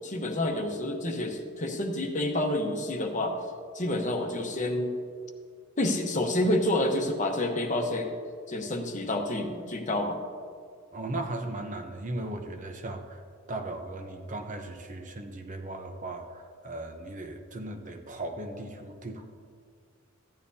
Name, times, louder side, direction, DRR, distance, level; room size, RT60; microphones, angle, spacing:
voice 1, 0.0-3.4 3.7-4.9 5.8-8.1 8.5-10.2, left 1 dB, 40° left, 3 dB, 1.0 m, -28 dB
voice 2, 10.9-13.2 13.5-19.2, right 2 dB, 40° right, 4 dB, 0.8 m, -37 dB
15.0 x 10.5 x 2.8 m, 2.1 s
head